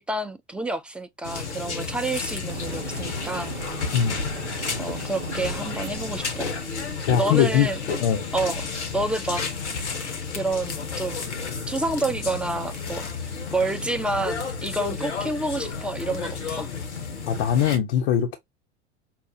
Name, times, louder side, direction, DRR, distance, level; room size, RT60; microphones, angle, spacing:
voice 1, 0.0-3.5 4.8-6.5 7.2-7.8 8.3-8.7 8.9-9.4 10.3-11.3 11.7-13.1 13.5-16.7, right 2 dB, 5° right, 0.6 m, -28 dB
sound 1, 1.2-17.8, left 5 dB, 80° left, 1.2 m, -32 dB
sound 2, 2.5-7.3, right 12 dB, 65° right, 0.7 m, -40 dB
voice 2, 7.1-7.7 8.0-8.3 17.3-18.4, left 9 dB, 55° left, 0.8 m, -21 dB
5.7 x 2.0 x 2.7 m
figure-of-eight pair, 80°, 34 cm